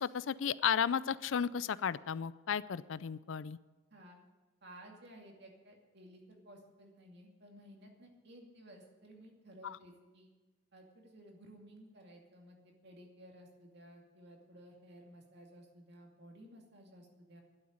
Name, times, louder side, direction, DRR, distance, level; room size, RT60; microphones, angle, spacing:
voice 1, 0.0-3.6 9.6-9.8, left 7 dB, 90° left, 18 dB, 0.4 m, -34 dB
voice 2, 4.6-10.3 10.7-17.4, right 1 dB, 60° right, 1 dB, 2.5 m, -56 dB
11.5 x 8.0 x 9.5 m, 1.2 s
head